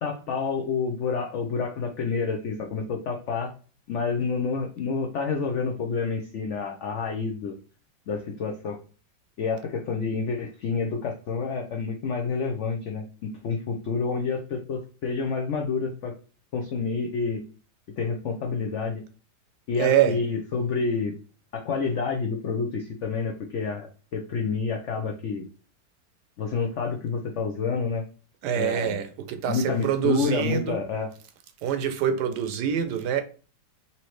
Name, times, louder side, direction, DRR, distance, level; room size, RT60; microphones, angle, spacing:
voice 1, 0.0-3.5 3.9-7.6 8.1-8.8 9.4-16.1 16.5-17.4 18.0-19.0 19.7-21.1 21.5-25.4 26.4-28.0 28.5-29.0 29.5-31.1, left 4 dB, 90° left, 0.6 m, -28 dB
voice 2, 19.8-20.2 28.4-30.8 31.6-33.2, right 9 dB, 75° right, 1.1 m, -25 dB
4.1 x 2.8 x 3.0 m
omnidirectional pair, 1.9 m